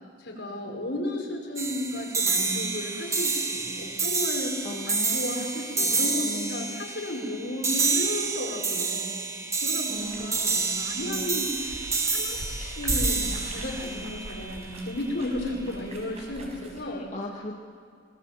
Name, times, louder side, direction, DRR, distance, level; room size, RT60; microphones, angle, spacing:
voice 1, 0.2-4.6 4.9-9.1 9.6-17.1, left 1 dB, 75° left, 0 dB, 5.4 m, -34 dB
sound 1, 1.6-15.0, right 4 dB, 20° right, 1.6 m, -29 dB
voice 2, 4.6-6.8 9.9-10.6 11.0-11.5 16.8-17.6, left 1 dB, 40° left, -1 dB, 1.9 m, -39 dB
sound 2, 9.9-16.8, right 1 dB, 40° right, 5.1 m, -39 dB
26.0 x 20.0 x 7.6 m, 2.2 s
head